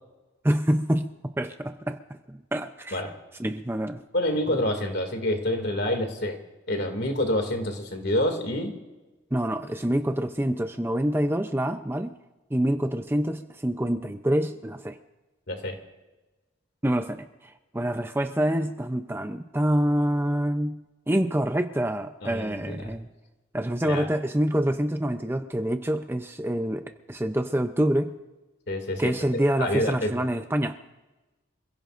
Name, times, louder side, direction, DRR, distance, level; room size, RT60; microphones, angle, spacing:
voice 1, 0.4-3.0 3.4-4.0 9.3-12.1 12.5-15.0 16.8-20.8 21.1-23.1 23.5-28.2 29.0-30.8, right 1 dB, 10° right, 7 dB, 0.5 m, -26 dB
voice 2, 4.1-6.4 6.7-8.7 15.5-15.8 22.2-22.9 23.8-24.1 28.7-30.1, left 1 dB, 55° left, 5 dB, 2.4 m, -27 dB
28.0 x 16.0 x 2.6 m, 1.1 s
head